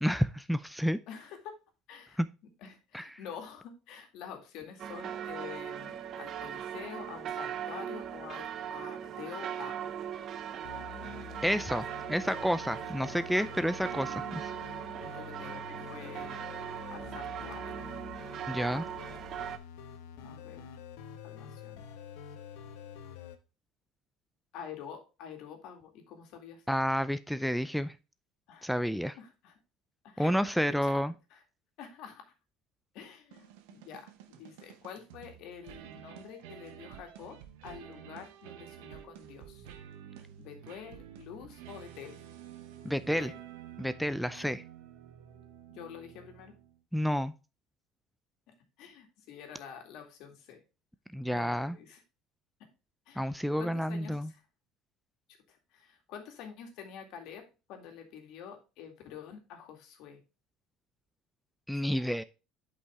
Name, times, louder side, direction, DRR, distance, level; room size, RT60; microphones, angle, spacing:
voice 1, 0.0-1.0 2.2-2.3 2.9-3.1 11.4-14.5 18.5-18.9 26.7-27.9 28.6-29.2 30.2-31.1 42.8-43.3 43.8-44.6 46.9-47.3 51.1-51.8 53.2-54.3 61.7-62.2, equal, ahead, 0.4 m, -30 dB
voice 2, 1.1-1.5 1.9-2.2 2.6-9.9 15.0-16.5 16.9-17.8 20.2-20.6 21.2-21.7 24.5-26.6 28.5-28.7 29.2-29.5 30.0-30.8 31.3-31.4 31.8-32.2 32.9-37.4 37.6-39.7 40.4-42.2 43.0-43.3 44.4-44.6 45.7-46.5 48.8-50.6 51.2-52.0 53.1-54.2 55.5-57.4 57.7-60.2 61.7-62.1, left 8 dB, 70° left, 2.2 m, -47 dB
sound 1, 4.8-19.6, right 9 dB, 50° right, 0.7 m, -39 dB
sound 2, 10.6-23.4, left 7 dB, 90° left, 1.0 m, -47 dB
sound 3, 33.3-46.8, right 10 dB, 90° right, 0.9 m, -50 dB
8.1 x 5.5 x 3.6 m
supercardioid pair, 110°, 0 cm